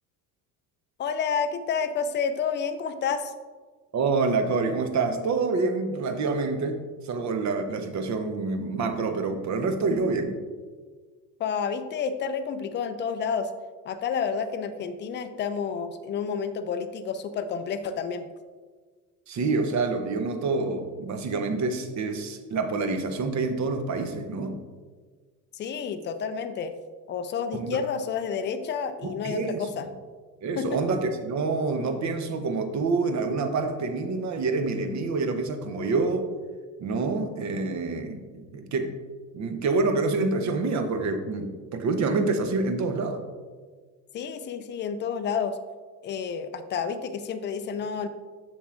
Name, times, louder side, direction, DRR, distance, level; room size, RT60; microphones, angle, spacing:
voice 1, 1.0-3.3 11.4-13.5 13.9-18.3 25.5-26.7 27.1-29.9 30.6-30.8 44.1-45.6 46.0-48.1, left 6 dB, 25° left, 10 dB, 0.4 m, -30 dB
voice 2, 3.9-10.4 19.3-24.6 27.6-27.8 29.0-29.7 30.4-36.3 36.8-38.9 39.3-43.2, right 3 dB, 35° right, 7 dB, 0.8 m, -27 dB
6.9 x 6.2 x 2.5 m, 1.5 s
hypercardioid pair, 65°, 50 cm